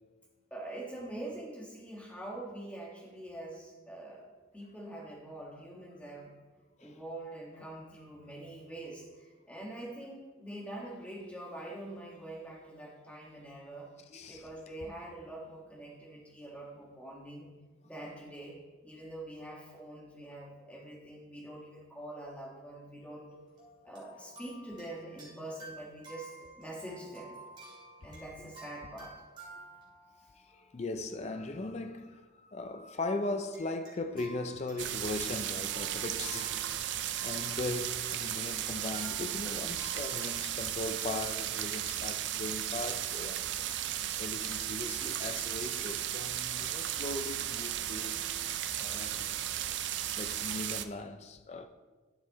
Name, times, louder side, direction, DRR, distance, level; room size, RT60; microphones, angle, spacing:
voice 1, 0.5-4.3 4.5-6.4 6.8-13.9 14.3-17.5 17.8-18.6 18.8-23.3 23.8-27.4 28.0-29.2, right 1 dB, 5° left, 1.5 m, -44 dB
voice 2, 14.1-14.5 28.4-28.5 30.5-36.9 37.2-43.7 44.2-48.3 48.8-49.3 50.2-51.7, left 2 dB, 30° left, 0.4 m, -39 dB
sound 1, 23.3-31.1 31.8-32.0 33.5-40.5, right 2 dB, 25° right, 2.6 m, -52 dB
sound 2, 34.8-50.8, right 11 dB, 60° right, 0.4 m, -35 dB
12.0 x 4.6 x 4.1 m
head